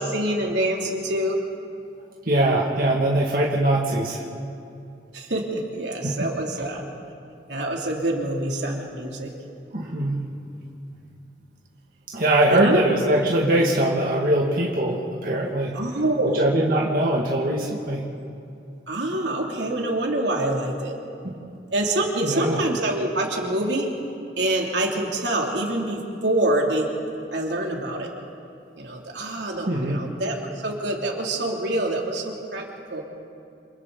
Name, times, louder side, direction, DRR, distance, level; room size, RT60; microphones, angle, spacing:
voice 1, 0.0-1.3 5.1-6.8 7.5-9.3 12.5-12.8 15.7-16.4 18.9-20.9 21.7-23.9 24.4-26.9 27.3-28.1 28.8-30.4 30.6-32.6 32.9-33.0, right 1 dB, 80° right, -1 dB, 3.1 m, -25 dB
voice 2, 2.3-4.3 6.0-6.2 9.7-10.2 12.1-15.7 16.3-18.0 21.2-21.4 22.2-22.6 29.7-30.0, right 1 dB, 50° right, -3 dB, 2.3 m, -22 dB
28.5 x 27.5 x 4.1 m, 2.6 s
head